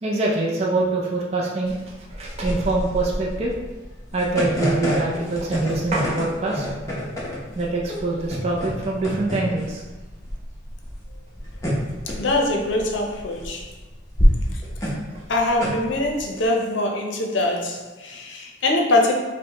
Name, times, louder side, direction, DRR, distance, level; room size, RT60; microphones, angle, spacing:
voice 1, 0.0-3.5 4.1-6.7 7.5-9.8 15.1-15.2, right 2 dB, 35° right, -3 dB, 0.5 m, -24 dB
sound 1, 1.7-16.4, equal, 15° left, 0.7 m, -27 dB
voice 2, 11.8-13.7 14.5-14.6 15.3-19.2, left 2 dB, 70° left, 1 dB, 0.6 m, -23 dB
5.3 x 2.2 x 2.9 m, 1.2 s
head